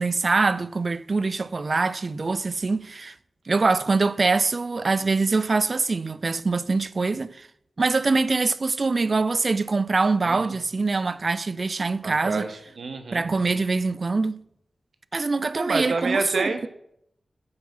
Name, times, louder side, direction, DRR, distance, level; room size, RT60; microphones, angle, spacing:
voice 1, 0.0-3.1 3.5-7.5 7.8-12.4 13.1-14.4 15.1-16.7, right 3 dB, 50° right, 0.5 m, -24 dB
voice 2, 12.0-13.2 15.5-16.7, right 3 dB, 70° right, 1.4 m, -28 dB
9.4 x 7.9 x 5.6 m
wide cardioid pair, 80°, 0 cm